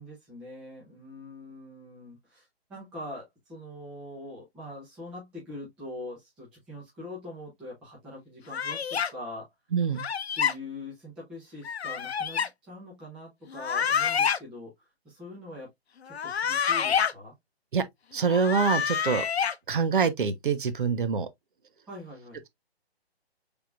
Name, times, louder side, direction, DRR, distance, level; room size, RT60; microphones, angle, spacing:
voice 1, 0.0-9.5 10.4-15.7 16.2-17.3 21.9-22.4, left 1 dB, 5° right, 0.6 m, -43 dB
sound 1, 8.5-9.1 10.0-10.5 11.6-12.5 13.5-14.4 16.1-17.1 18.2-19.5, left 7 dB, 75° left, 0.6 m, -27 dB
voice 2, 9.7-10.1 17.7-17.8 18.1-19.3 19.7-21.3, right 5 dB, 55° right, 0.7 m, -25 dB
5.7 x 3.5 x 2.3 m
hypercardioid pair, 160°, 32 cm